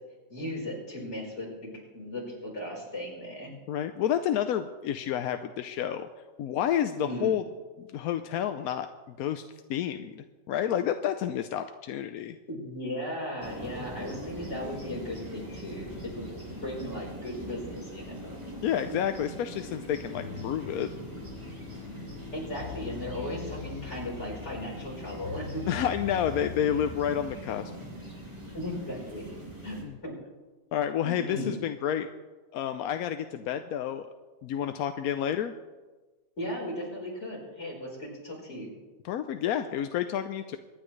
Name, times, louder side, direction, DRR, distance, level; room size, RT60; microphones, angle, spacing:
voice 1, 0.3-3.5 7.0-7.4 12.5-16.3 16.6-18.4 22.3-25.6 28.5-29.3 29.6-29.8 30.0-30.1 31.0-31.6 36.4-38.7, left 1 dB, 50° left, -4 dB, 4.8 m, -37 dB
voice 2, 3.7-6.1 6.4-7.4 7.8-9.4 9.7-12.4 18.6-20.9 25.7-27.7 29.8-29.9 30.7-32.1 32.5-34.1 34.4-35.5 39.0-40.6, left 9 dB, 90° left, 8 dB, 1.1 m, -30 dB
sound 1, 13.4-29.8, equal, 20° right, 2.9 m, -42 dB
sound 2, 20.1-27.3, left 7 dB, 70° left, 1.3 m, -43 dB
24.5 x 10.0 x 3.2 m, 1.3 s
omnidirectional pair, 1.5 m